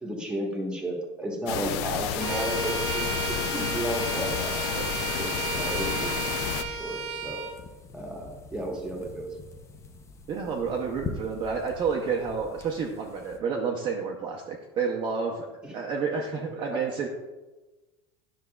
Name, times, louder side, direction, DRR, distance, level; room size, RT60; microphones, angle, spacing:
voice 1, 0.0-4.7 5.2-7.5 7.9-9.3 15.6-15.7 16.6-16.8, right 1 dB, 5° right, 0 dB, 1.2 m, -33 dB
sound 1, 1.5-6.6, left 10 dB, 70° left, 0.5 m, -31 dB
sound 2, 2.1-13.4, left 4 dB, 20° left, 0.5 m, -45 dB
Bowed string instrument, 2.2-7.6, right 5 dB, 75° right, 1.0 m, -33 dB
voice 2, 10.3-15.5 15.7-17.1, right 5 dB, 35° right, 0 dB, 0.6 m, -30 dB
9.7 x 5.9 x 2.3 m, 1.1 s
supercardioid pair, 145°, 15 cm